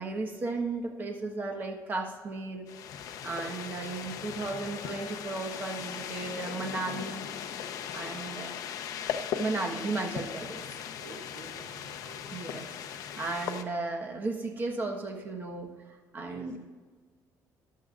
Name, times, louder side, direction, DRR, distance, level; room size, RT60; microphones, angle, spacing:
voice 1, 0.0-2.7 3.2-7.2 7.9-8.5 9.4-10.6 12.3-15.7 16.1-16.6, right 3 dB, 30° right, 2 dB, 1.2 m, -35 dB
sound 1, 2.7-13.6, left 8 dB, 60° left, 0.7 m, -38 dB
voice 2, 7.9-8.2 10.9-12.4 16.2-16.5, right 4 dB, 70° right, 1 dB, 2.1 m, -51 dB
14.5 x 10.5 x 2.5 m, 1.5 s
cardioid pair, 175°, 7 cm